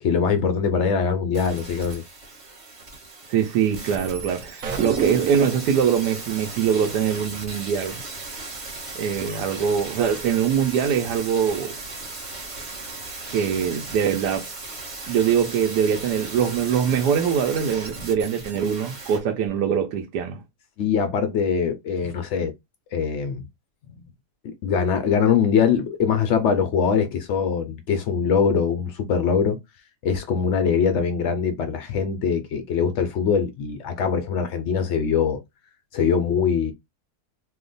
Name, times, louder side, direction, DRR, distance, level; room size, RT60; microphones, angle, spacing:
voice 1, 0.0-2.0 20.8-22.5 22.9-23.4 24.4-29.6 30.0-35.4 35.9-36.7, left 6 dB, 80° left, 0.6 m, -22 dB
sound 1, 1.3-19.2 19.5-19.6, right 3 dB, 35° right, 1.0 m, -37 dB
voice 2, 3.3-8.0 8.9-11.8 13.3-14.5 15.1-20.4, right 8 dB, 85° right, 1.2 m, -23 dB
sound 2, 4.6-5.7, right 6 dB, 65° right, 1.0 m, -28 dB
2.9 x 2.1 x 3.8 m
omnidirectional pair, 1.7 m